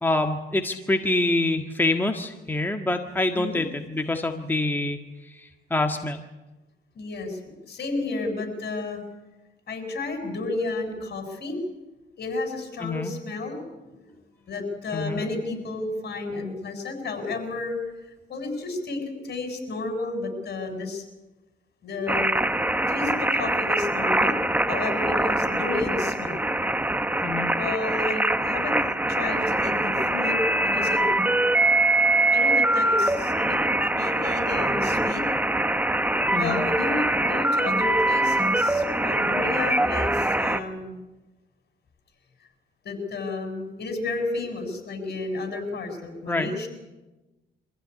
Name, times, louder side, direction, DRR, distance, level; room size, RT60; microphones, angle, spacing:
voice 1, 0.0-5.0 5.3-6.2 12.8-13.1 14.9-15.2 27.2-27.5 36.3-36.6 46.3-46.5, left 2 dB, 10° left, 4 dB, 1.7 m, -26 dB
voice 2, 6.9-7.4 7.7-9.0 9.7-11.6 12.2-13.6 13.9-14.1 14.5-17.8 18.3-21.0 21.8-22.3 22.9-24.4 24.7-26.4 27.5-28.8 29.1-30.4 30.6-31.1 32.3-35.3 36.4-41.0 42.8-46.7, left 3 dB, 55° left, 5 dB, 7.4 m, -31 dB
sound 1, 22.1-40.6, right 1 dB, 10° right, 1.5 m, -23 dB
25.5 x 15.5 x 10.0 m, 1.1 s
cardioid pair, 90°, 20 cm